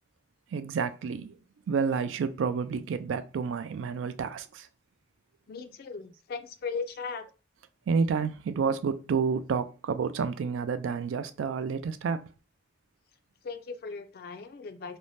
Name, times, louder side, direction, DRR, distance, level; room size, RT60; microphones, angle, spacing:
voice 1, 0.5-1.4 1.7-4.7 7.9-12.3, right 5 dB, 90° right, 0.3 m, -29 dB
voice 2, 5.5-7.3 13.4-15.0, left 5 dB, 55° left, 0.3 m, -37 dB
2.6 x 2.1 x 3.1 m
head